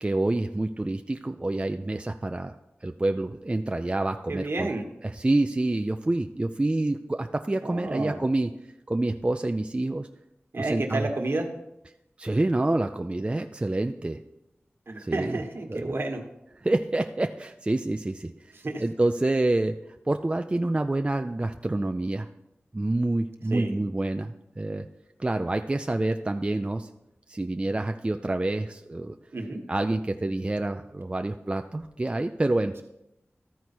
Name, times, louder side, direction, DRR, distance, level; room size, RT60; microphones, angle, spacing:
voice 1, 0.0-4.7 5.0-8.5 8.9-10.1 10.6-11.0 12.2-14.2 15.0-15.4 15.7-15.9 16.6-18.3 18.8-19.8 20.1-22.3 22.7-24.9 25.2-26.9 27.3-29.2 29.7-32.8, right 2 dB, 25° right, 6 dB, 0.3 m, -27 dB
voice 2, 4.3-4.8 7.6-8.2 10.5-11.5 14.9-16.2 18.5-18.8 23.5-23.8 29.3-29.6, right 2 dB, 60° right, 3 dB, 1.3 m, -30 dB
13.5 x 4.6 x 4.3 m, 0.87 s
wide cardioid pair, 85°, 5 cm